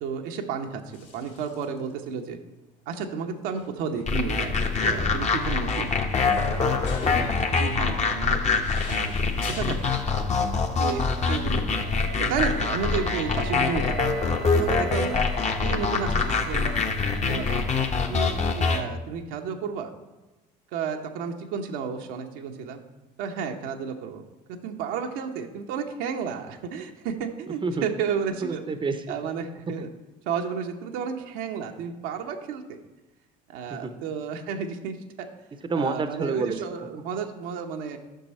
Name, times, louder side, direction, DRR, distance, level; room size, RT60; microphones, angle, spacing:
voice 1, 0.0-2.4 2.9-6.0 6.5-6.8 7.6-8.6 8.9-9.3 9.6-9.9 10.6-11.0 11.3-11.8 12.3-14.1 14.5-15.2 15.6-16.8 17.3-19.9 20.7-22.8 23.2-24.2 24.6-28.6 29.1-29.9 30.3-32.8 33.5-35.3 35.7-38.0, right 6 dB, 70° right, 4 dB, 0.9 m, -32 dB
sound 1, 0.9-1.8 2.1-2.2 3.5-10.0, left 3 dB, 70° left, 2.5 m, -39 dB
sound 2, 4.1-18.8, left 4 dB, 30° left, 1.0 m, -25 dB
voice 2, 6.9-7.6 27.6-27.8 28.4-29.0 29.8-29.9 33.7-33.9 35.6-36.6, right 4 dB, 25° right, 9 dB, 0.7 m, -29 dB
Wind instrument woodwind instrument, 11.7-17.8, right 7 dB, 90° right, 1.0 m, -42 dB
9.2 x 6.0 x 4.3 m, 1.1 s
hypercardioid pair, 65°, 21 cm